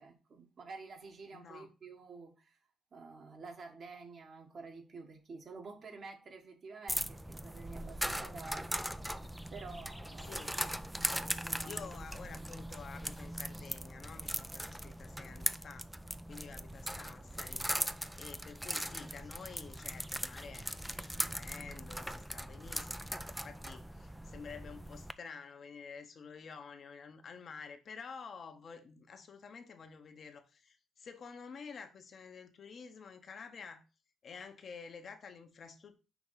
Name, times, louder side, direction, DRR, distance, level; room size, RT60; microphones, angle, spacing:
voice 1, 0.0-2.6 2.9-8.7 9.5-10.3 11.4-11.9, right 4 dB, 50° right, 1.3 m, -49 dB
voice 2, 1.3-1.7 10.2-10.5 11.6-15.9 16.3-17.6 18.2-33.8 34.2-36.0, left 5 dB, 50° left, 0.9 m, -50 dB
sound 1, 6.9-25.1, equal, 5° right, 0.4 m, -40 dB
5.9 x 2.9 x 5.6 m
cardioid pair, 90°, 0 cm